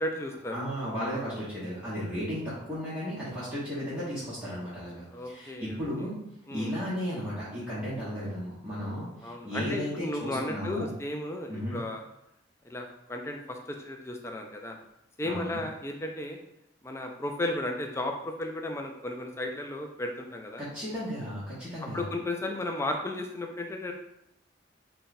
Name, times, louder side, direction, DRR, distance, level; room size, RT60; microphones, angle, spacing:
voice 1, 0.0-0.6 5.1-5.8 6.5-6.7 9.2-12.0 12.6-14.8 15.2-16.4 16.8-20.6 21.8-23.9, left 1 dB, 15° left, 3 dB, 0.3 m, -34 dB
voice 2, 0.5-6.1 6.5-10.9 11.5-11.8 15.2-15.6 20.6-22.1, equal, 5° right, -12 dB, 1.0 m, -34 dB
3.8 x 2.2 x 4.0 m, 0.82 s
head